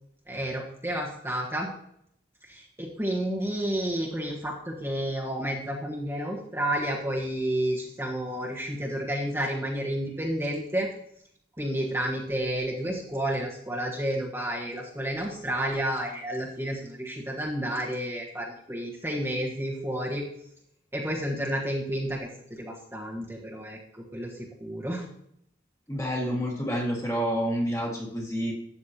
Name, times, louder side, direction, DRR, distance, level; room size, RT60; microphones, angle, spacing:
voice 1, 0.3-1.7 2.5-10.9 11.6-20.2 20.9-25.0, right 1 dB, 15° right, -3 dB, 1.3 m, -31 dB
voice 2, 25.9-28.5, equal, 15° left, -1 dB, 1.8 m, -28 dB
12.5 x 8.5 x 2.9 m, 0.71 s
head